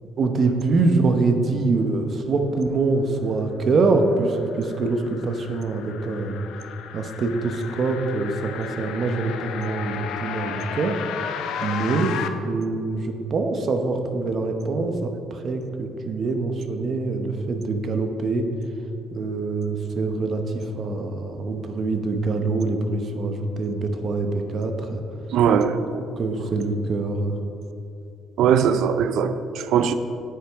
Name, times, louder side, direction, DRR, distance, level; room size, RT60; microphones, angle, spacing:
voice 1, 0.2-6.4 6.9-11.0 11.6-18.5 19.1-25.0 25.9-27.3, right 3 dB, 40° right, 5 dB, 0.8 m, -24 dB
sound 1, 3.9-12.3, left 8 dB, 75° left, 0.5 m, -34 dB
voice 2, 25.3-25.8 28.4-29.9, right 8 dB, 70° right, 11 dB, 0.5 m, -20 dB
9.4 x 9.2 x 3.5 m, 2.7 s
cardioid pair, 140°, 0 cm